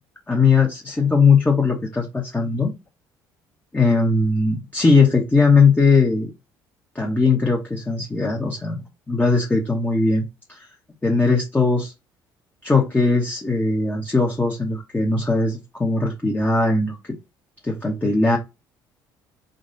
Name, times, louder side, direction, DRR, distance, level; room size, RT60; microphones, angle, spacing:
voice 1, 0.3-2.7 3.7-6.3 6.9-10.6 11.0-11.9 12.6-17.0 17.6-18.4, left 4 dB, 15° left, 1.1 m, -19 dB
3.9 x 2.5 x 3.9 m
hypercardioid pair, 55°, 10 cm